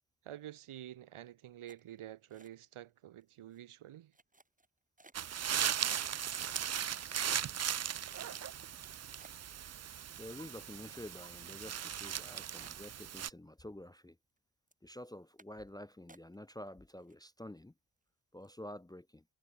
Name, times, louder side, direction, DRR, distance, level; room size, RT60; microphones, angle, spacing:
voice 1, 0.2-4.1, right 12 dB, 75° right, 2.6 m, -49 dB
sound 1, 1.7-2.9 3.2-3.6 4.1-5.4 6.1-6.2 6.7-8.2 8.7-8.8 9.2-11.4 11.7-11.8 12.1-12.2 12.6-13.6 13.9-14.4 14.7-14.9 15.4-15.7 16.1-16.7 17.0-17.6 18.0-18.1 18.4-18.7, right 2 dB, 15° right, 6.5 m, -64 dB
sound 2, 5.1-13.3, right 9 dB, 35° right, 0.5 m, -38 dB
voice 2, 10.2-14.2 14.8-17.7 18.3-19.2, left 1 dB, 10° left, 0.8 m, -49 dB
wide cardioid pair, 140°, 50 cm